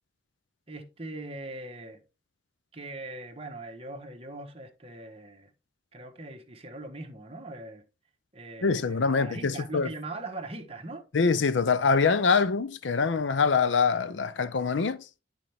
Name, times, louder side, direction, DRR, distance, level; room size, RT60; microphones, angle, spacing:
voice 1, 0.7-2.0 2.7-5.5 5.9-7.8 8.3-11.1, right 2 dB, 35° right, 1.3 m, -41 dB
voice 2, 8.6-9.9 11.1-15.0, left 5 dB, 85° left, 0.6 m, -24 dB
11.0 x 4.4 x 3.4 m
head